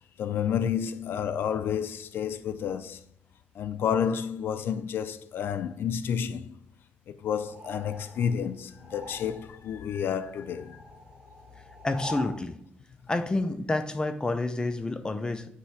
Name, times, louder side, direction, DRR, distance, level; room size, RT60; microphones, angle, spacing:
voice 1, 0.2-3.0 3.6-6.6 7.1-10.8, left 8 dB, 75° left, 0.4 m, -30 dB
sound 1, 7.4-9.7 9.9-12.4, equal, 15° right, 1.8 m, -44 dB
voice 2, 11.8-12.6 13.1-15.5, left 2 dB, 20° left, 0.6 m, -29 dB
9.4 x 3.3 x 4.7 m
cardioid pair, 100°, 4 cm